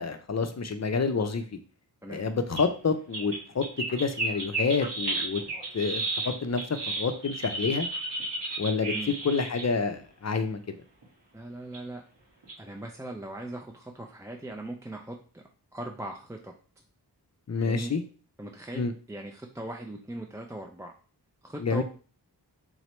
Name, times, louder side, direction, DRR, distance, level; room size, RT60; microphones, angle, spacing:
voice 1, 0.0-1.4 2.1-3.7 3.9-5.4 5.7-6.6 7.0-7.9 8.6-8.9 9.2-10.7 17.5-18.0 18.7-18.9 21.6-21.8, left 4 dB, 40° left, 8 dB, 0.5 m, -28 dB
sound 1, 2.6-2.7 3.1-9.7 11.0-11.1 11.7-11.8 12.4-12.5, right 2 dB, 90° right, 1.8 m, -33 dB
voice 2, 11.3-12.0 12.6-15.4 15.7-16.5 17.5-17.9 18.4-20.9 21.4-21.8, right 1 dB, 10° right, 1 dB, 0.4 m, -39 dB
3.8 x 3.1 x 3.0 m, 0.38 s
wide cardioid pair, 70°, 41 cm